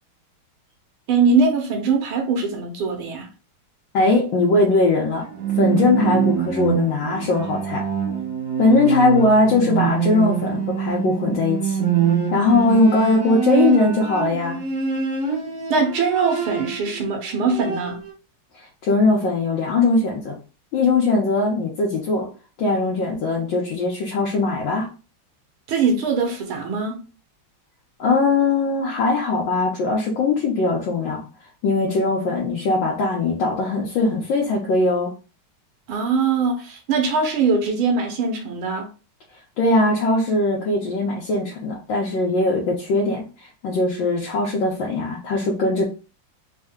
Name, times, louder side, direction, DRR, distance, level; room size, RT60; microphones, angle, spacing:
voice 1, 1.1-3.3 15.7-18.0 25.7-27.0 35.9-38.9, right 4 dB, 90° right, 1.8 m, -21 dB
voice 2, 3.9-5.3 5.6-7.9 8.6-11.8 12.3-14.6 18.5-20.4 20.7-22.3 22.6-24.9 28.0-31.2 31.6-35.1 39.6-45.8, left 3 dB, 70° left, 1.5 m, -20 dB
Bowed string instrument, 5.2-17.0 17.3-18.1, right 7 dB, 45° right, 1.3 m, -24 dB
4.3 x 2.2 x 3.5 m
omnidirectional pair, 2.3 m